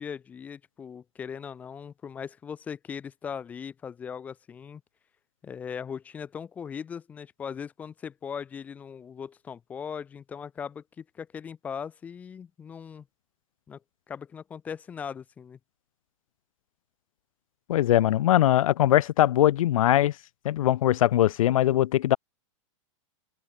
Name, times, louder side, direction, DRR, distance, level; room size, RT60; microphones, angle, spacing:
voice 1, 0.0-4.8 5.4-13.1 13.7-13.8 14.1-15.6, left 7 dB, 10° left, 0.5 m, -39 dB
voice 2, 17.7-20.1 20.4-22.2, left 13 dB, 80° left, 0.4 m, -21 dB
open air
supercardioid pair, 165°, 17 cm